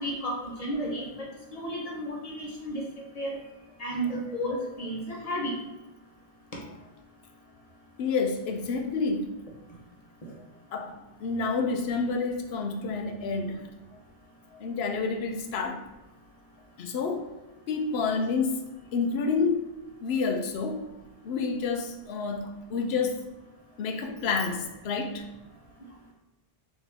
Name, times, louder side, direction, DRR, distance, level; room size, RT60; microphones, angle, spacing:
voice 1, 0.0-2.9 3.1-3.4 3.8-5.5, equal, 40° left, -2 dB, 1.0 m, -33 dB
voice 2, 8.0-9.3 10.7-13.6 14.5-15.8 16.8-17.3 17.7-18.7 18.9-20.9 21.2-23.2 23.8-25.3, left 4 dB, 90° left, 5 dB, 0.9 m, -29 dB
4.1 x 3.0 x 3.4 m, 1.0 s
omnidirectional pair, 1.0 m